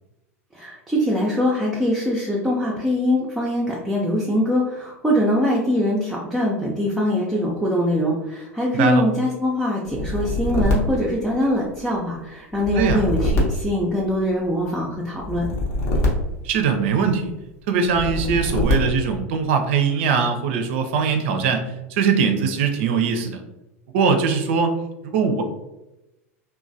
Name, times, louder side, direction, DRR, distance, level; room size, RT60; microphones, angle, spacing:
voice 1, 0.5-15.5, left 1 dB, 5° right, -5 dB, 0.5 m, -23 dB
voice 2, 8.7-9.0 12.7-13.0 16.4-17.3 17.7-23.4 23.9-24.8 25.0-25.4, right 5 dB, 55° right, 6 dB, 0.5 m, -21 dB
sound 1, 9.9-11.9 12.5-14.5 15.2-17.1 17.9-19.2, left 1 dB, 45° left, 0.8 m, -24 dB
3.0 x 2.1 x 2.6 m, 0.96 s
figure-of-eight pair, 85°, 8 cm